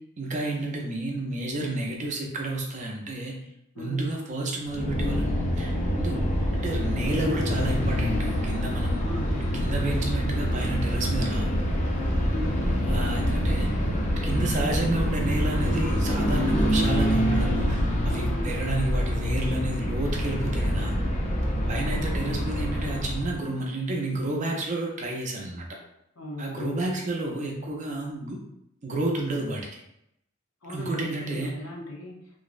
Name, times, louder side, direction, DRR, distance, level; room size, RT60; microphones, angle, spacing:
voice 1, 0.2-3.4 3.8-6.3 6.5-9.0 9.5-11.6 12.9-13.7 14.2-20.9 21.7-25.7 26.4-28.4 28.8-29.8 30.7-31.5, right 2 dB, 35° right, 0 dB, 0.4 m, -31 dB
voice 2, 3.7-4.1 9.0-9.8 12.3-12.7 18.0-18.7 20.6-20.9 21.7-22.0 26.2-26.9 30.6-32.2, left 2 dB, 85° left, -2 dB, 0.6 m, -37 dB
sound 1, 4.7-23.4, equal, 35° left, 0.4 m, -26 dB
2.5 x 2.0 x 2.4 m, 0.80 s
head